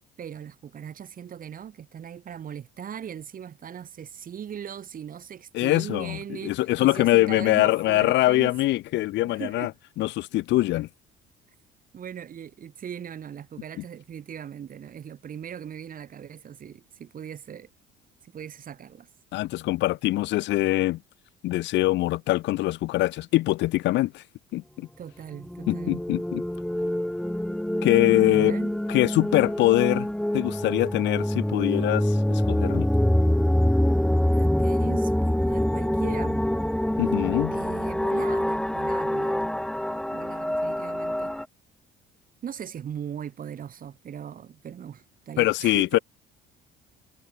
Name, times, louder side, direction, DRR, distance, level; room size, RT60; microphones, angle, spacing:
voice 1, 0.2-8.5 9.2-9.7 11.9-17.7 18.2-19.1 25.0-26.0 28.2-28.7 34.3-36.5 37.5-39.5 40.1-41.3 42.4-46.0, right 8 dB, 50° right, 5.3 m, -39 dB
voice 2, 5.5-9.7 10.0-10.9 19.3-21.0 21.4-24.2 24.5-24.9 25.7-26.4 27.8-28.5 28.9-30.1 30.3-32.9 37.0-37.5 45.4-46.0, left 17 dB, 75° left, 1.7 m, -23 dB
sound 1, 25.4-41.5, left 1 dB, 5° left, 2.7 m, -25 dB
cardioid pair, 95°, 19 cm